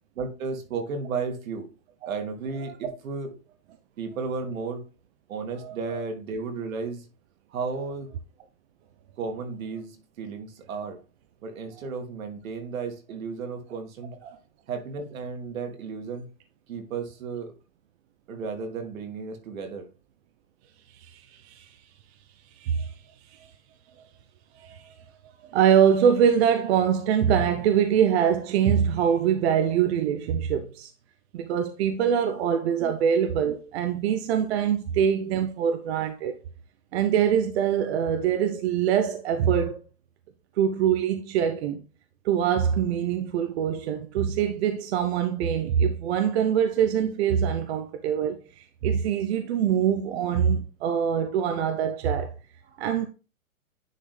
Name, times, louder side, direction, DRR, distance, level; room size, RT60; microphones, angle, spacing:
voice 1, 0.2-1.7 2.1-3.3 4.0-4.8 5.3-7.1 7.5-8.1 9.2-11.0 11.4-14.2 14.7-16.3 16.7-17.5 18.3-19.9 32.8-32.9, right 4 dB, 70° right, 2.3 m, -33 dB
voice 2, 5.6-6.0 14.2-14.4 20.9-21.8 22.6-22.9 23.3-23.5 24.6-24.9 25.5-30.9 31.3-36.4 36.9-39.8 40.6-41.8 42.2-52.3 52.8-53.1, right 8 dB, 50° right, 0.8 m, -24 dB
10.0 x 3.9 x 3.4 m
hypercardioid pair, 135°, 43 cm